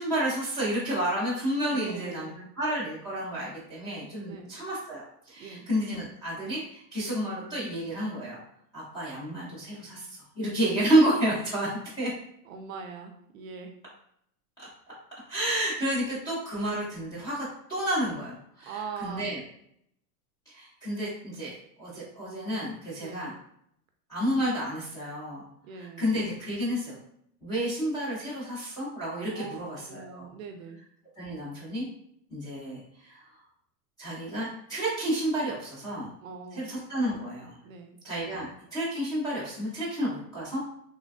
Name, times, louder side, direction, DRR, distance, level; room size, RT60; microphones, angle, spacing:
voice 1, 0.0-2.3 2.6-8.4 8.7-10.1 10.4-11.7 12.0-12.1 14.6-14.7 15.3-19.4 20.5-21.5 21.8-23.3 24.1-25.4 25.8-27.0 27.4-30.2 31.2-31.9 32.3-33.2 34.0-36.1 36.6-37.5 38.0-40.6, right 1 dB, 10° left, -10 dB, 0.5 m, -30 dB
voice 2, 1.7-2.5 4.3-4.6 5.4-5.7 12.4-13.7 18.7-19.3 23.0-23.3 25.6-26.1 29.3-29.6 29.9-30.8 36.2-36.8 37.6-38.0, right 5 dB, 60° right, 5 dB, 0.5 m, -41 dB
3.3 x 2.2 x 2.4 m, 0.70 s
supercardioid pair, 160°, 48 cm